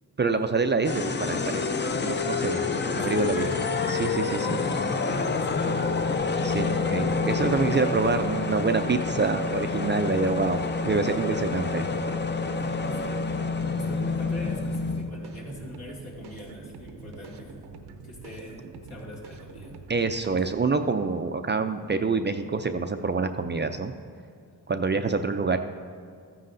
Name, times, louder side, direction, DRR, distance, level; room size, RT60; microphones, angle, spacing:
voice 1, 0.2-1.7 2.0-3.5 3.9-4.6 6.4-10.6 10.8-11.9 19.9-23.9 24.7-25.6, right 4 dB, 30° right, 7 dB, 0.4 m, -26 dB
sound 1, 0.8-15.1, left 4 dB, 30° left, 0.6 m, -28 dB
voice 2, 2.9-3.3 4.3-4.5 5.0-5.8 12.6-17.6 18.0-19.8 24.5-24.6, left 1 dB, 70° left, -4 dB, 2.6 m, -41 dB
sound 2, 14.6-20.6, right 4 dB, 85° right, 0.8 m, -45 dB
13.5 x 9.6 x 2.6 m, 2.3 s
cardioid pair, 80°, 39 cm